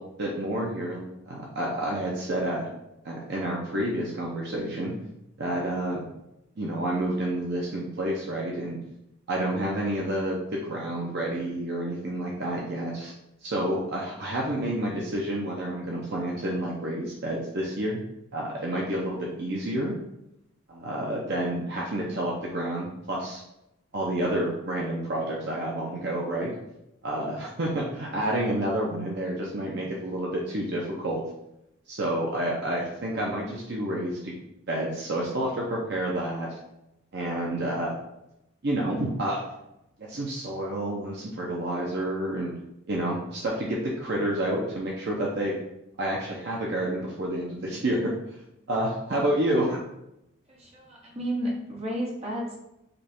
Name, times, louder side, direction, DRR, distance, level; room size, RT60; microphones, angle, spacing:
voice 1, 0.0-2.7 3.0-4.9 5.4-6.1 6.6-8.8 9.3-13.1 13.4-18.0 18.3-20.0 20.7-23.4 23.9-26.5 27.0-31.2 31.9-34.3 34.7-36.6 37.1-38.0 38.6-39.4 40.1-42.5 42.9-45.6 46.0-48.4 48.7-49.8, right 1 dB, 55° right, -3 dB, 0.7 m, -29 dB
voice 2, 50.5-52.6, equal, 30° right, -3 dB, 1.2 m, -32 dB
5.2 x 2.4 x 4.3 m, 0.86 s
head